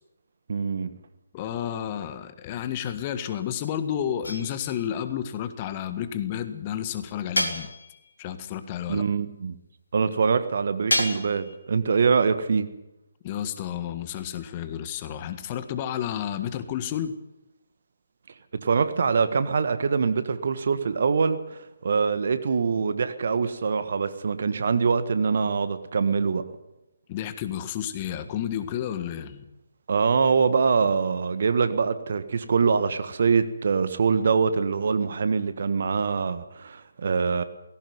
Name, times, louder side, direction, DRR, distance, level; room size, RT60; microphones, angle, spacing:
voice 1, 0.5-0.9 8.9-9.6 9.9-12.7 18.6-26.4 29.9-37.4, right 5 dB, 50° right, 11 dB, 1.6 m, -24 dB
voice 2, 1.3-7.7 8.2-9.0 13.2-17.1 27.1-29.5, left 10 dB, 25° left, 11 dB, 1.6 m, -31 dB
sound 1, 4.2-4.9 7.4-8.1 10.9-11.6, left 1 dB, 80° left, 3.7 m, -29 dB
18.5 x 17.0 x 9.6 m, 0.90 s
figure-of-eight pair, 140°, 0 cm